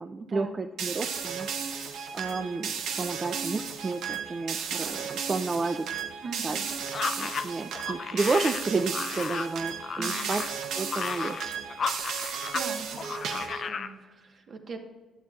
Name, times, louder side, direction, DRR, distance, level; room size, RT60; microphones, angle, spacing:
voice 1, 0.0-1.9 2.1-5.9 6.4-6.6 7.2-10.4 10.7-11.6, right 3 dB, 30° right, 5 dB, 0.4 m, -31 dB
sound 1, 0.8-13.7, right 7 dB, 80° right, 0.7 m, -34 dB
voice 2, 6.2-6.7 10.0-10.3 12.1-13.0 13.3-14.8, right 4 dB, 50° right, 4 dB, 1.1 m, -41 dB
sound 2, 6.9-12.7 13.0-13.9, left 6 dB, 50° left, 0.4 m, -34 dB
11.5 x 7.5 x 2.3 m, 1.3 s
cardioid pair, 90°, 0 cm